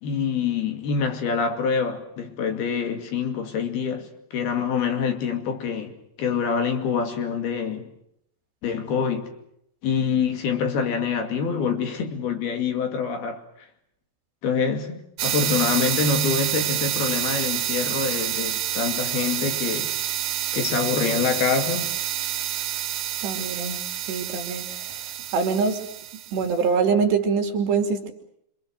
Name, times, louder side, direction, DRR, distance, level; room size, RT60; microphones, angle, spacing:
voice 1, 0.0-7.9 8.6-9.3 9.8-13.4 14.4-19.9 20.5-21.9, left 6 dB, 55° left, 3.9 m, -26 dB
sound 1, 15.2-26.5, right 12 dB, 80° right, 4.0 m, -28 dB
voice 2, 23.2-23.8 24.1-24.9 25.3-25.8 26.3-28.1, right 5 dB, 60° right, 4.5 m, -24 dB
28.0 x 25.5 x 6.4 m
omnidirectional pair, 5.8 m